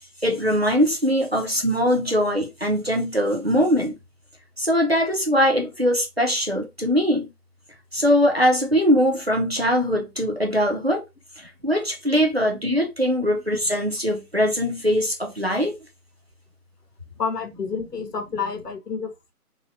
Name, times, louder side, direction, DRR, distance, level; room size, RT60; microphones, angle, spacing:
voice 1, 0.2-4.0 4.6-7.3 7.9-11.0 11.4-15.8, equal, 45° right, 0.5 m, -21 dB
voice 2, 17.2-19.3, left 5 dB, 80° left, 0.9 m, -30 dB
2.8 x 2.0 x 2.5 m
figure-of-eight pair, 170°, 47 cm